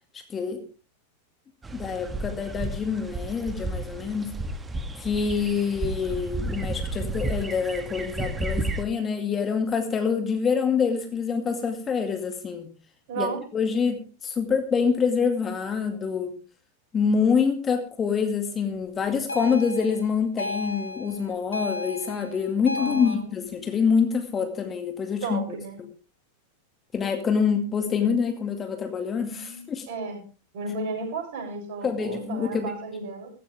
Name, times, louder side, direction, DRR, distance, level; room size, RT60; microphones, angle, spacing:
voice 1, 0.1-0.6 1.7-4.3 5.0-12.7 13.2-16.4 16.9-25.4 26.9-29.9 31.8-32.6, left 6 dB, 20° left, 6 dB, 2.2 m, -26 dB
sound 1, 1.6-8.8, right 2 dB, 15° right, 1.6 m, -32 dB
voice 2, 13.1-13.4 22.8-23.3 25.2-25.8 29.3-29.6 29.9-30.2 30.5-33.3, right 3 dB, 50° right, 2 dB, 7.2 m, -33 dB
sound 2, 19.3-23.2, left 2 dB, 80° left, 1.3 m, -33 dB
15.5 x 15.0 x 3.5 m, 0.34 s
figure-of-eight pair, 90°, 0 cm